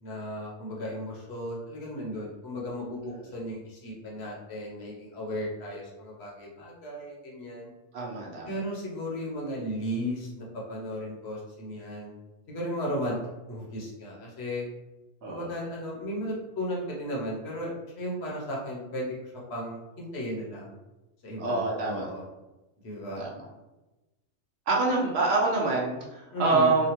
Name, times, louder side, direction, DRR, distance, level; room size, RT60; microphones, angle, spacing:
voice 1, 0.0-7.7 8.5-12.1 12.5-13.2 13.5-14.6 15.3-20.7 21.2-22.2 22.8-23.3 26.3-26.7, equal, 65° left, -3 dB, 1.0 m, -35 dB
voice 2, 7.9-8.5 15.2-15.5 21.4-22.1 23.2-23.3 24.7-26.9, right 3 dB, 65° right, -3 dB, 0.9 m, -26 dB
3.0 x 2.2 x 2.8 m, 1.1 s
omnidirectional pair, 1.2 m